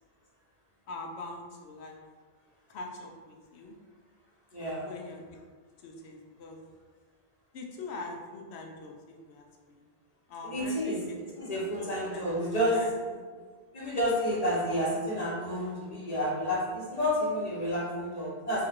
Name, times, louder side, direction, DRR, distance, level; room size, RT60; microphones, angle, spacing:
voice 1, 0.9-2.0 2.7-3.7 4.8-5.2 5.8-6.6 7.5-8.9 9.3-9.8 10.3-11.5 11.8-12.3 12.7-12.9, left 3 dB, 80° left, 1 dB, 0.9 m, -43 dB
voice 2, 4.5-4.9 10.4-11.0 11.3-13.2 13.7-18.7, equal, 40° left, -5 dB, 1.0 m, -30 dB
2.9 x 2.5 x 4.3 m, 1.5 s
omnidirectional pair, 1.1 m